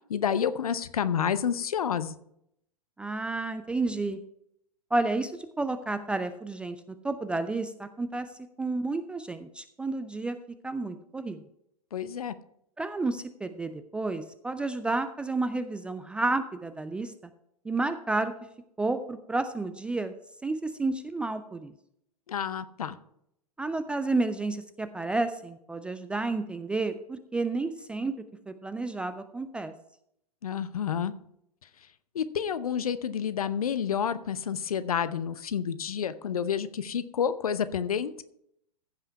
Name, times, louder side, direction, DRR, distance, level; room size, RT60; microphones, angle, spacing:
voice 1, 0.1-2.1 11.9-12.3 22.3-23.0 30.4-31.1 32.1-38.2, left 8 dB, 65° left, 14 dB, 0.7 m, -29 dB
voice 2, 3.0-4.2 4.9-8.3 8.6-10.4 10.6-11.4 12.8-17.1 17.6-18.3 18.8-20.1 20.4-21.7 23.6-28.1 28.5-29.7, right 3 dB, 5° right, 10 dB, 0.3 m, -31 dB
15.0 x 5.5 x 4.6 m, 0.74 s
figure-of-eight pair, 105°, 20 cm